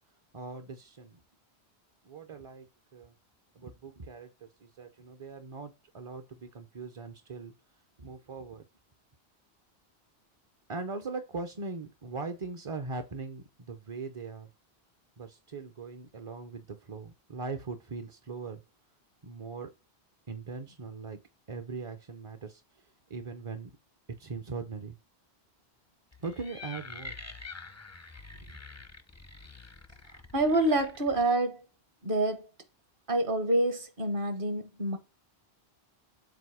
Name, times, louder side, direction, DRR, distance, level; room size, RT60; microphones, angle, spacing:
voice 1, 0.3-1.2 2.1-2.7 2.9-3.1 3.6-7.5 8.0-8.6 10.7-14.5 15.2-18.6 19.2-19.7 20.3-21.2 21.5-22.6 23.1-23.7 24.2-25.0 26.2-27.2 28.4-28.6, right 4 dB, 40° right, 0.5 m, -40 dB
sound 1, 26.1-31.3, left 3 dB, 25° left, 0.4 m, -46 dB
voice 2, 30.3-31.6 32.0-32.5 33.1-35.0, right 2 dB, 55° right, 1.3 m, -27 dB
7.8 x 2.7 x 4.7 m
omnidirectional pair, 1.1 m